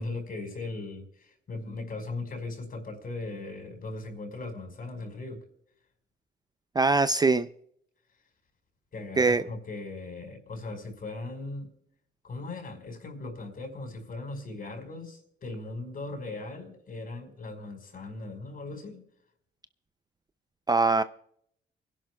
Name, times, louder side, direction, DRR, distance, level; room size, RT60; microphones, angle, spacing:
voice 1, 0.0-5.4 8.9-11.7 12.2-19.0, left 2 dB, 45° left, 5.0 m, -38 dB
voice 2, 6.8-7.5 9.2-9.4 20.7-21.0, right 3 dB, 20° right, 0.5 m, -22 dB
29.0 x 11.0 x 2.3 m
cardioid pair, 90°, 20 cm